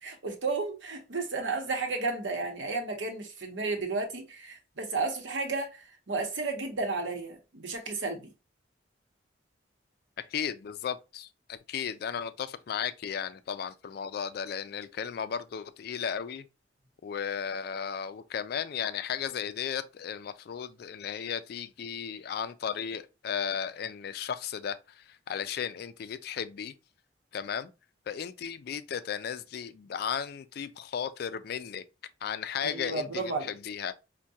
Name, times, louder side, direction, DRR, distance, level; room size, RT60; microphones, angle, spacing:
voice 1, 0.0-8.3 32.6-33.5, right 3 dB, 80° right, 0.9 m, -33 dB
voice 2, 10.2-16.4 17.0-26.7 27.3-27.7 28.1-31.8 32.2-33.9, left 7 dB, 55° left, 0.3 m, -35 dB
4.5 x 2.2 x 2.7 m
head